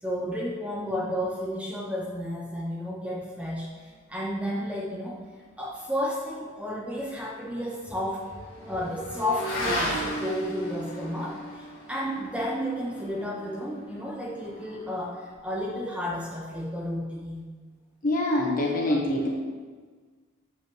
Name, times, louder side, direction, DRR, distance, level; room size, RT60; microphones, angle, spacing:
voice 1, 0.0-5.2 5.6-8.3 8.7-17.4 18.9-19.0, equal, 5° right, -3 dB, 0.6 m, -32 dB
Motorcycle / Accelerating revving vroom, 6.6-15.4, equal, 90° left, 1.6 m, -36 dB
voice 2, 18.0-19.3, left 1 dB, 40° left, -1 dB, 1.2 m, -25 dB
7.2 x 5.4 x 3.1 m, 1.5 s
head